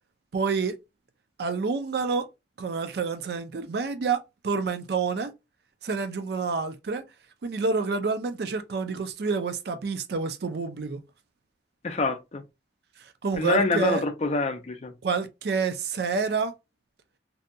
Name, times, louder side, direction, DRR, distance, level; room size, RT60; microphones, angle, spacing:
voice 1, 0.3-0.8 1.4-2.3 2.6-5.3 5.8-7.0 7.4-11.0 13.0-14.0 15.0-16.5, right 5 dB, 60° right, 0.4 m, -28 dB
voice 2, 11.8-12.4 13.4-14.9, left 3 dB, 35° left, 0.4 m, -26 dB
2.6 x 2.2 x 2.6 m
head